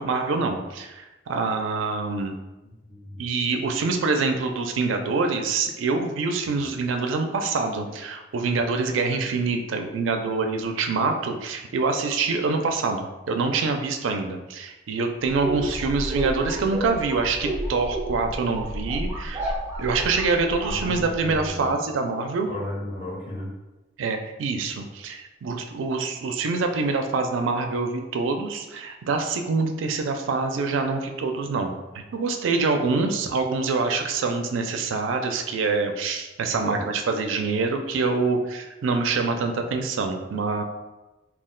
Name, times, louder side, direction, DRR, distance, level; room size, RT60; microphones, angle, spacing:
voice 1, 0.0-2.4 3.2-19.4 19.8-22.5 24.0-40.6, right 4 dB, 90° right, 5 dB, 0.4 m, -25 dB
voice 2, 2.9-3.2 6.5-6.7 20.7-21.7 22.5-23.5 36.4-36.8, left 1 dB, 35° left, -9 dB, 1.1 m, -34 dB
sound 1, 15.3-21.5, right 1 dB, 15° right, 0.4 m, -31 dB
2.3 x 2.1 x 3.7 m, 1.1 s
head